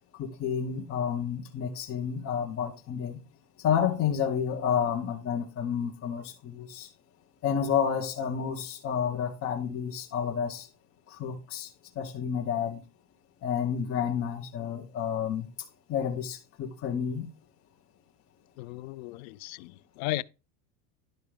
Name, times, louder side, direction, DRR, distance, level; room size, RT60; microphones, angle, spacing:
voice 1, 0.2-3.2 3.6-6.9 7.4-10.7 11.1-12.8 13.4-15.5 15.9-17.3, left 8 dB, 30° left, 1.1 m, -30 dB
voice 2, 18.6-20.2, left 17 dB, 65° left, 0.6 m, -35 dB
11.5 x 4.6 x 5.0 m
supercardioid pair, 150°, 45 cm